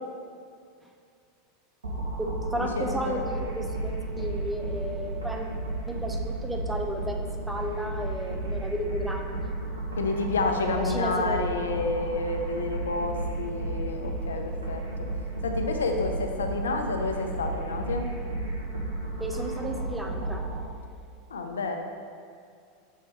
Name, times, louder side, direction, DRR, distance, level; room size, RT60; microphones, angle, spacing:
sound 1, 1.8-20.7, right 2 dB, 80° right, 0.9 m, -33 dB
voice 1, 2.2-5.5 5.9-9.5 10.5-11.4 19.2-20.4, equal, 5° right, 2 dB, 0.6 m, -33 dB
voice 2, 2.8-3.2 10.0-14.8 15.4-18.1 21.3-21.8, left 3 dB, 80° left, 4 dB, 0.5 m, -29 dB
6.4 x 3.4 x 4.3 m, 2.3 s
figure-of-eight pair, 85°, 0 cm